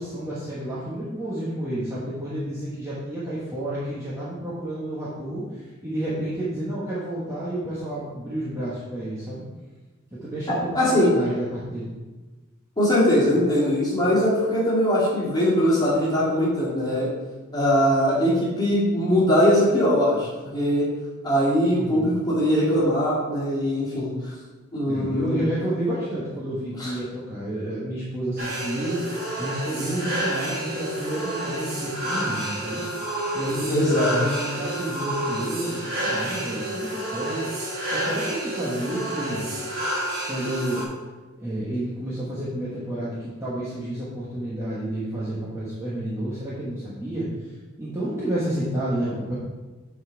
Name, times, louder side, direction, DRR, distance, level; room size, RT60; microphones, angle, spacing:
voice 1, 0.0-9.4 10.2-11.9 21.7-22.2 24.9-29.0 29.4-32.8 33.3-39.4 40.2-40.9 41.4-49.3, right 1 dB, 15° right, -10 dB, 1.3 m, -30 dB
voice 2, 10.5-11.2 12.8-17.1 17.5-20.9 21.2-24.1 24.7-25.4 26.8-26.9 33.7-34.2, equal, 20° left, -8 dB, 2.4 m, -21 dB
sound 1, 28.4-40.8, right 1 dB, 45° right, 1.9 m, -29 dB
8.5 x 4.2 x 4.6 m, 1.2 s
head